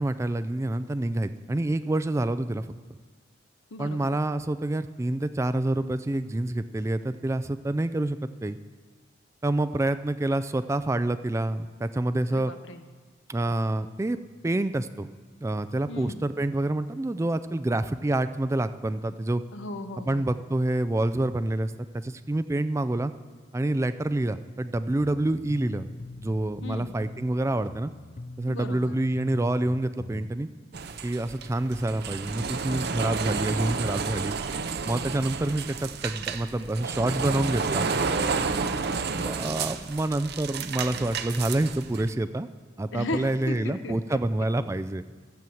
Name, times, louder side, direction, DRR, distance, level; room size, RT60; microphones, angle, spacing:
voice 1, 0.0-2.7 3.8-8.6 9.4-12.5 13.3-14.2 14.4-15.1 15.4-19.4 20.1-23.1 23.5-25.9 26.2-27.9 28.4-30.5 31.0-34.4 34.9-37.9 39.2-42.5 42.8-45.0, right 1 dB, 15° right, 12 dB, 0.3 m, -27 dB
voice 2, 3.7-4.1 12.3-12.9 15.9-16.3 19.5-20.4 26.6-26.9 28.5-29.0 38.0-39.0 42.9-44.2, left 2 dB, 75° left, 9 dB, 0.9 m, -37 dB
sound 1, 25.0-30.3, left 2 dB, 40° left, 0.5 m, -43 dB
sound 2, 30.7-42.1, right 5 dB, 55° right, 0.6 m, -31 dB
13.5 x 7.2 x 7.7 m, 1.5 s
head